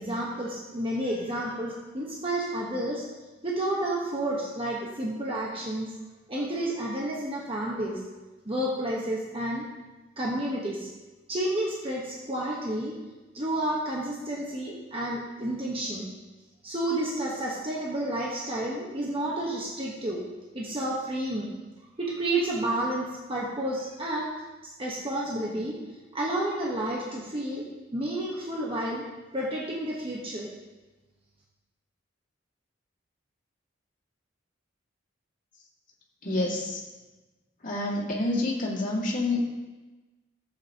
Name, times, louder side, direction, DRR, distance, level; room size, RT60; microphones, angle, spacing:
voice 1, 0.0-3.1 3.4-5.9 6.3-8.0 8.5-9.6 10.2-10.9 11.3-13.0 13.3-16.1 16.6-20.2 20.5-21.5 22.0-24.3 24.6-25.8 26.1-29.1 29.3-30.5, right 1 dB, 30° right, -4 dB, 1.2 m, -30 dB
voice 2, 36.2-36.8 37.6-39.4, left 2 dB, 45° left, -4 dB, 2.3 m, -28 dB
15.0 x 8.0 x 2.9 m, 1.2 s
head